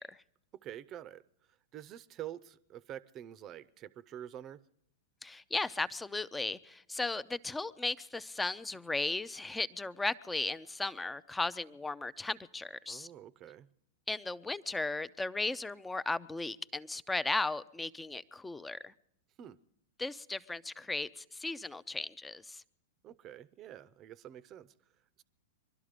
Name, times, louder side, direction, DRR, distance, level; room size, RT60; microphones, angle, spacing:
voice 1, 0.5-1.2 1.7-4.6 12.9-13.7 19.4-19.6 23.0-24.7 25.2-25.3, right 11 dB, 35° right, 19 dB, 0.7 m, -47 dB
voice 2, 5.2-13.1 14.1-18.9 20.0-22.6, left 3 dB, 10° left, 16 dB, 0.6 m, -36 dB
23.0 x 12.5 x 5.1 m, 0.73 s
hypercardioid pair, 105°, 0 cm